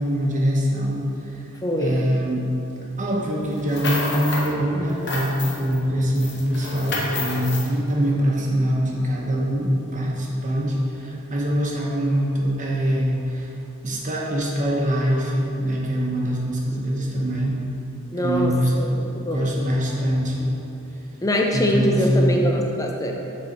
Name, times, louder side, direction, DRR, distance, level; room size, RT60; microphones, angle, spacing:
voice 1, 0.0-1.5 1.8-2.5 3.0-13.5 13.8-17.6 18.2-20.5 21.5-22.4, equal, 35° right, -3 dB, 0.9 m, -23 dB
voice 2, 1.6-2.0 18.1-19.5 21.2-23.1, equal, 15° left, 1 dB, 0.5 m, -23 dB
sound 1, 3.5-4.5 4.9-5.8 6.2-7.7, left 2 dB, 50° left, 0.9 m, -29 dB
6.5 x 4.1 x 4.3 m, 2.9 s
head